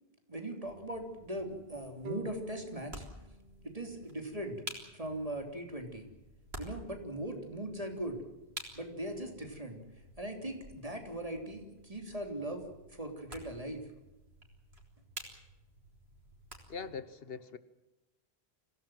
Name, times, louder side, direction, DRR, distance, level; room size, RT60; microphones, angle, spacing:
voice 1, 0.3-3.0 3.6-4.6 4.9-6.0 6.6-8.2 8.7-9.8 10.2-13.8, right 1 dB, 35° right, 3.4 m, -39 dB
sound 1, 0.6-17.0, right 1 dB, 80° right, 4.2 m, -51 dB
sound 2, 2.0-5.3, right 2 dB, 55° right, 1.3 m, -50 dB
voice 2, 16.7-17.6, left 5 dB, 65° left, 1.2 m, -42 dB
25.5 x 17.0 x 7.7 m
omnidirectional pair, 1.1 m